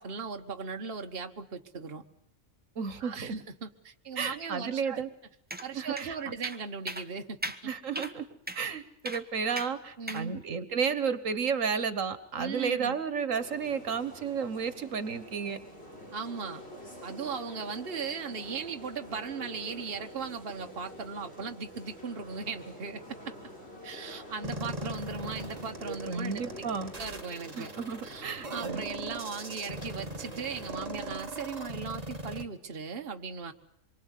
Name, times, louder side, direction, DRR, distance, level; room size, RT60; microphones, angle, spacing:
voice 1, 0.0-2.0 3.0-5.0 5.6-7.7 10.0-10.4 12.4-12.9 16.1-16.6 17.0-23.3 23.8-26.7 27.0-27.7 28.0-33.5, right 5 dB, 50° right, 4 dB, 1.5 m, -38 dB
voice 2, 2.8-3.3 4.2-5.1 5.7-6.4 7.7-8.3 8.5-15.6 26.1-26.9 27.5-28.8, right 6 dB, 75° right, 13 dB, 1.7 m, -32 dB
sound 1, 5.5-5.7 6.0-6.1 6.4-6.6 6.9-7.1 7.4-7.6 8.0-8.1 8.5-8.6 9.1-9.2 9.6-9.7 10.1-10.2, right 1 dB, 10° right, 1.2 m, -36 dB
sound 2, 13.3-31.1, equal, 50° left, 5.6 m, -47 dB
sound 3, 24.4-32.4, right 1 dB, 30° right, 1.8 m, -40 dB
26.5 x 23.5 x 8.3 m, 0.70 s
omnidirectional pair, 1.3 m